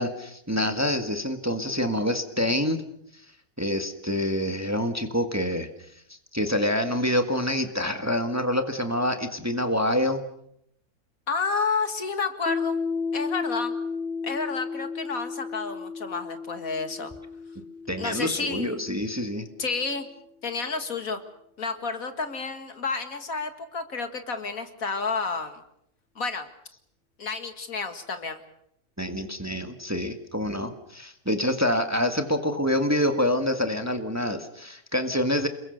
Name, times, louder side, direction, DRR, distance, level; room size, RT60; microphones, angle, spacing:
voice 1, 0.0-2.8 3.6-5.7 6.3-10.2 17.9-19.4 29.0-35.5, left 1 dB, 10° right, 7 dB, 1.6 m, -26 dB
voice 2, 11.3-12.8 13.1-13.7 14.2-17.1 18.0-18.8 19.6-20.1 20.4-21.2 21.6-25.6 26.2-26.5 27.2-28.4, left 4 dB, 65° left, 8 dB, 2.4 m, -30 dB
Piano, 12.5-19.7, left 5 dB, 45° left, 2.4 m, -33 dB
29.0 x 21.5 x 6.7 m, 0.75 s
omnidirectional pair, 1.6 m